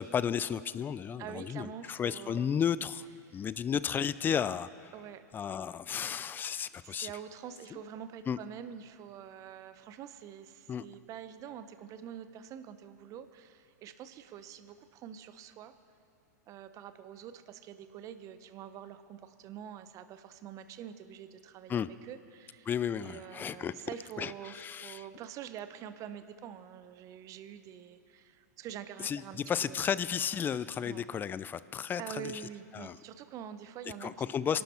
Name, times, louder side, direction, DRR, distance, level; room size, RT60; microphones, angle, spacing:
voice 1, 0.0-3.1 3.3-4.9 5.3-7.1 8.3-8.4 10.7-10.8 21.7-21.9 22.7-23.7 24.2-25.0 29.0-29.2 29.5-32.3 32.7-33.0 34.0-34.6, left 8 dB, 20° left, 17 dB, 0.5 m, -33 dB
voice 2, 1.2-2.6 3.3-3.4 4.9-5.2 6.8-15.7 16.5-22.7 23.0-29.9 30.8-31.0 32.0-34.1 34.5-34.6, right 9 dB, 35° right, 11 dB, 0.9 m, -46 dB
27.0 x 12.0 x 4.5 m, 2.4 s
hypercardioid pair, 110°, 9 cm